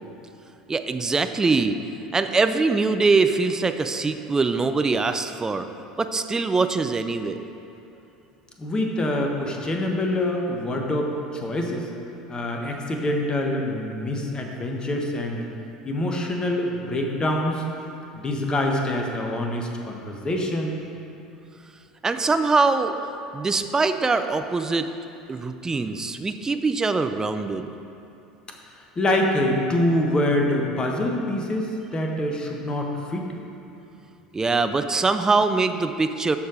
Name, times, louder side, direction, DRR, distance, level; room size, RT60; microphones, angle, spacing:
voice 1, 0.7-1.8 2.1-5.7 6.0-7.4 22.0-23.0 23.3-24.9 25.3-27.7 34.3-36.4, right 4 dB, 15° right, 8 dB, 0.5 m, -23 dB
voice 2, 8.6-11.9 12.3-15.5 15.8-17.6 18.1-20.8 28.7-33.3, left 1 dB, 25° left, 1 dB, 1.3 m, -25 dB
13.0 x 4.6 x 4.9 m, 2.8 s
figure-of-eight pair, 70°, 4 cm